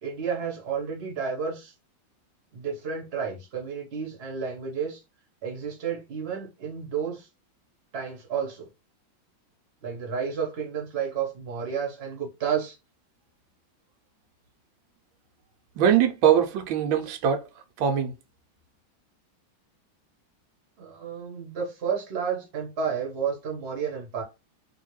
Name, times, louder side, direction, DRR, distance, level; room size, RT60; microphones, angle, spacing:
voice 1, 0.0-1.7 2.5-5.0 5.4-7.3 7.9-8.7 9.8-12.8 20.8-24.2, right 6 dB, 40° right, 1.2 m, -31 dB
voice 2, 15.8-17.5 17.8-18.1, right 9 dB, 85° right, 1.4 m, -22 dB
3.0 x 2.7 x 3.1 m
omnidirectional pair, 2.1 m